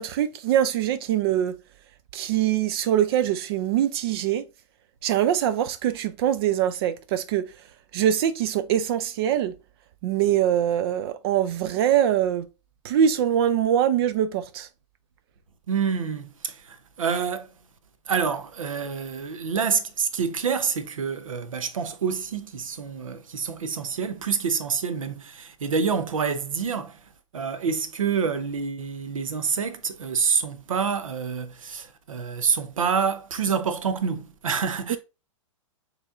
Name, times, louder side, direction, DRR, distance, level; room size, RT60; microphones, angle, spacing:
voice 1, 0.0-1.6 2.1-4.4 5.0-7.5 7.9-9.6 10.0-12.5 12.8-14.7 34.9-35.0, right 10 dB, 50° right, 0.4 m, -23 dB
voice 2, 15.7-17.5 18.1-35.0, right 6 dB, 90° right, 0.7 m, -27 dB
6.2 x 3.1 x 2.4 m
hypercardioid pair, 120°, 17 cm